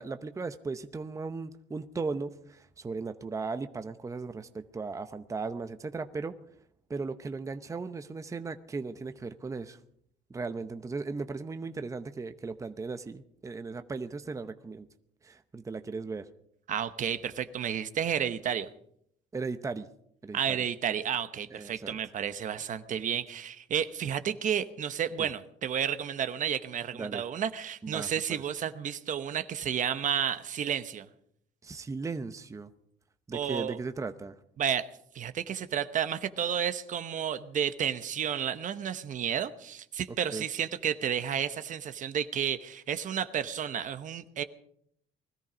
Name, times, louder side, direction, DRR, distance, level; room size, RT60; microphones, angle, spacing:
voice 1, 0.0-6.4 6.9-9.8 10.3-14.9 15.2-16.3 19.3-19.9 20.2-20.6 21.5-22.0 25.2-25.3 26.9-27.2 27.8-28.4 31.6-32.7 33.3-34.4 40.3-40.4, right 4 dB, 20° right, 9 dB, 0.8 m, -37 dB
voice 2, 16.7-18.7 20.3-31.1 33.3-33.8 34.6-34.9 35.1-44.4, right 8 dB, 50° right, 11 dB, 1.0 m, -31 dB
21.0 x 13.5 x 5.1 m, 0.69 s
cardioid pair, 110°, 17 cm